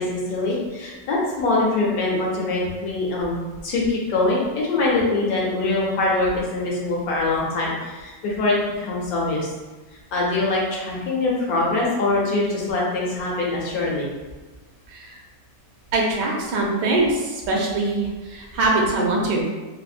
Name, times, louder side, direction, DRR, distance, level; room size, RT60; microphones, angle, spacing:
voice 1, 0.0-9.5 10.1-14.1, left 2 dB, 65° left, -4 dB, 1.2 m, -23 dB
voice 2, 15.9-19.5, right 2 dB, 80° right, -1 dB, 1.3 m, -22 dB
4.1 x 2.0 x 2.4 m, 1.3 s
omnidirectional pair, 1.8 m